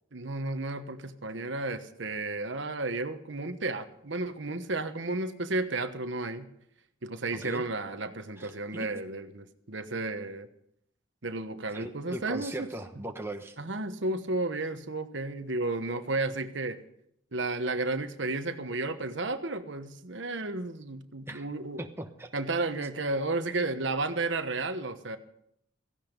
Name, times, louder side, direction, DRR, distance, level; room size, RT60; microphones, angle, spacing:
voice 1, 0.1-6.5 7.0-10.5 11.2-12.7 13.6-16.8 17.3-21.9 22.3-25.2, right 2 dB, 60° right, 9 dB, 1.2 m, -33 dB
voice 2, 7.3-7.6 8.4-8.9 11.7-13.6 21.3-21.5 21.8-22.3, right 1 dB, 10° right, 4 dB, 1.1 m, -39 dB
17.0 x 15.5 x 5.3 m, 0.73 s
head